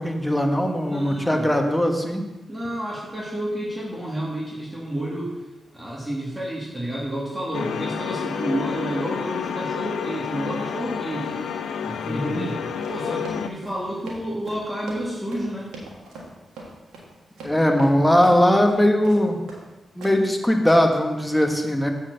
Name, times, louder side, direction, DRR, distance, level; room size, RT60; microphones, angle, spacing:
voice 1, 0.0-2.2 12.0-12.5 17.4-19.4 19.9-21.9, equal, 10° left, 3 dB, 1.5 m, -20 dB
voice 2, 0.8-1.5 2.5-5.3 5.7-11.3 11.8-15.8, right 1 dB, 15° right, -6 dB, 2.4 m, -30 dB
sound 1, 7.5-13.5, left 7 dB, 80° left, 0.5 m, -29 dB
Run, 12.8-19.7 20.0-20.3 20.7-21.0, right 2 dB, 85° right, 1.6 m, -41 dB
7.1 x 4.5 x 6.8 m, 1.1 s
supercardioid pair, 45°, 0 cm